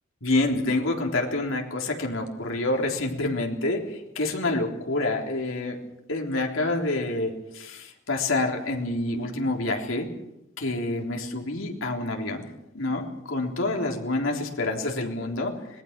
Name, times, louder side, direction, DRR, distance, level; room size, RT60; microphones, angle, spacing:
voice 1, 0.2-5.8 6.1-10.1 10.6-12.4 12.7-15.6, left 2 dB, 85° left, 1 dB, 3.7 m, -27 dB
25.5 x 20.0 x 6.0 m, 0.87 s
head